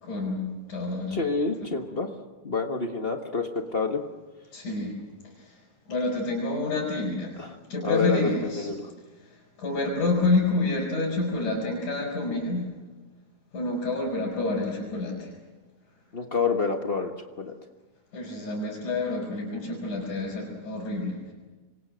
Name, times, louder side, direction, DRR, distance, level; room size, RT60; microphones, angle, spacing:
voice 1, 0.0-1.2 4.5-5.0 5.3-5.6 5.9-7.4 7.7-8.7 9.2-12.7 13.5-15.3 18.1-21.3, left 2 dB, 75° left, -4 dB, 6.4 m, -28 dB
voice 2, 1.1-2.1 2.4-4.0 7.4-7.5 7.8-8.9 16.1-17.1 17.4-17.5, left 4 dB, 60° left, 4 dB, 0.6 m, -28 dB
27.0 x 24.5 x 6.4 m, 1.2 s
omnidirectional pair, 3.5 m